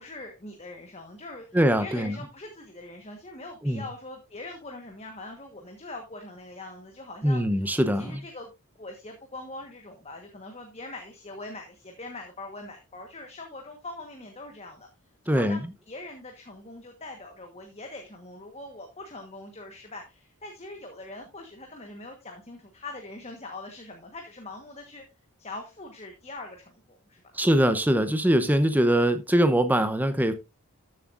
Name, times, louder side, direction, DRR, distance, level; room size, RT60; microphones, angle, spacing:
voice 1, 0.0-7.4 8.0-8.5 8.8-14.9 15.2-25.0 25.4-27.2, left 2 dB, 30° left, 1.3 m, -42 dB
voice 2, 1.5-2.2 3.6-3.8 7.2-8.2 15.3-15.7 27.3-30.3, equal, 10° right, 0.8 m, -22 dB
13.5 x 7.5 x 2.5 m
head